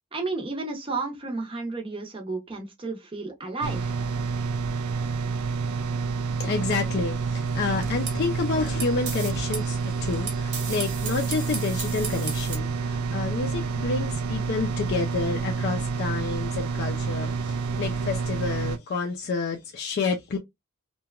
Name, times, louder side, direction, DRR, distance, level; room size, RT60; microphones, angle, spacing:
voice 1, 0.1-4.0, right 3 dB, 25° right, 0.6 m, -32 dB
sound 1, 3.6-18.8, right 4 dB, 85° right, 0.4 m, -29 dB
voice 2, 6.4-20.4, left 4 dB, 50° left, 0.4 m, -29 dB
sound 2, 7.4-12.6, right 5 dB, 55° right, 1.0 m, -36 dB
2.8 x 2.2 x 2.2 m
head